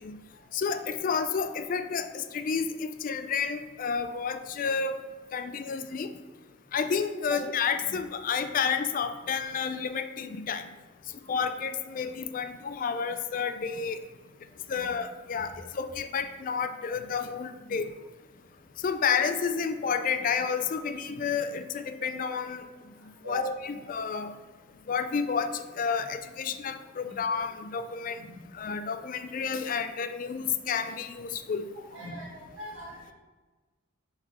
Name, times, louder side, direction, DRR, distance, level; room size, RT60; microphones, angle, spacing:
voice 1, 0.5-4.9 5.3-6.1 6.7-10.6 11.3-14.0 14.7-17.9 18.8-22.6 23.3-24.3 24.9-28.2 28.5-31.7, left 6 dB, 40° left, 10 dB, 0.3 m, -30 dB
voice 2, 31.9-33.1, left 2 dB, 75° right, -4 dB, 2.1 m, -39 dB
6.5 x 3.6 x 5.4 m, 1.3 s
head